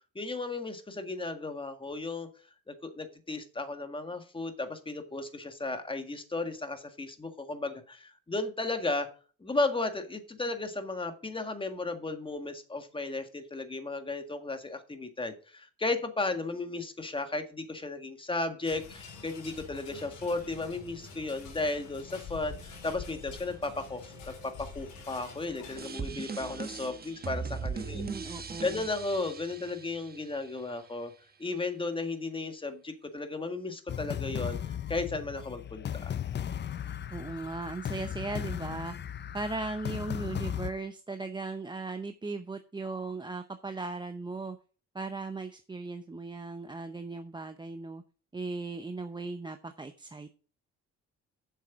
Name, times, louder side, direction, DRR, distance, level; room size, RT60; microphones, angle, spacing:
voice 1, 0.0-2.3 2.7-9.1 9.4-31.1 31.4-36.1, left 3 dB, 15° left, 7 dB, 1.7 m, -35 dB
sound 1, 18.6-25.9, left 5 dB, 80° left, 4.1 m, -46 dB
sound 2, 25.8-30.7, right 5 dB, 30° right, 1.1 m, -39 dB
voice 2, 27.9-28.8 37.1-38.9 39.3-44.6 44.9-48.0 48.3-50.3, right 3 dB, 15° right, 8 dB, 0.6 m, -37 dB
sound 3, 33.9-40.7, left 9 dB, 35° left, 0.5 m, -36 dB
7.6 x 6.5 x 6.0 m, 0.39 s
cardioid pair, 90°, 30 cm